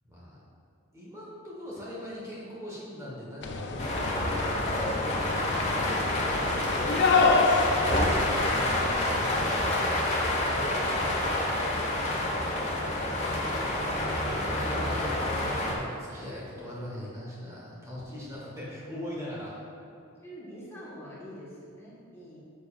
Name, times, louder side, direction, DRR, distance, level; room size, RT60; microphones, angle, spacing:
voice 1, 0.0-0.4 0.9-5.7 8.1-12.7 14.0-19.6, left 1 dB, 15° right, -6 dB, 1.5 m, -41 dB
sound 1, 3.4-9.9, left 4 dB, 55° left, 0.6 m, -29 dB
sound 2, 3.8-15.8, left 1 dB, 35° left, 1.2 m, -28 dB
voice 2, 20.2-22.4, equal, 15° left, -8 dB, 1.6 m, -45 dB
9.4 x 7.2 x 2.6 m, 2.7 s
head